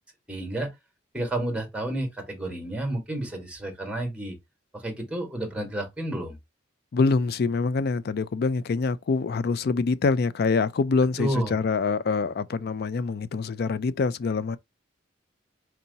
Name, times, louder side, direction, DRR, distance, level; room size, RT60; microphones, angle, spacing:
voice 1, 0.3-0.7 1.1-4.4 4.7-6.4 11.2-11.6, right 1 dB, 5° right, 1.5 m, -30 dB
voice 2, 6.9-14.6, left 4 dB, 55° left, 0.4 m, -25 dB
4.6 x 2.8 x 3.9 m
head